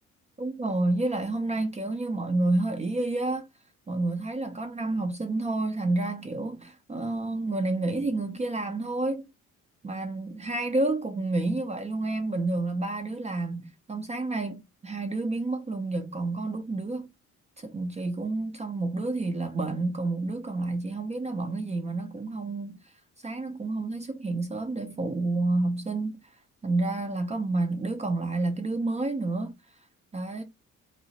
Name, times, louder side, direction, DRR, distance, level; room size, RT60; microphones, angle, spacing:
voice 1, 0.4-3.5 3.9-9.2 9.8-17.1 17.6-22.8 23.2-26.2 26.6-29.5 30.1-30.4, right 2 dB, 25° right, 0.4 m, -29 dB
2.8 x 2.0 x 2.7 m
cardioid pair, 90°, 30 cm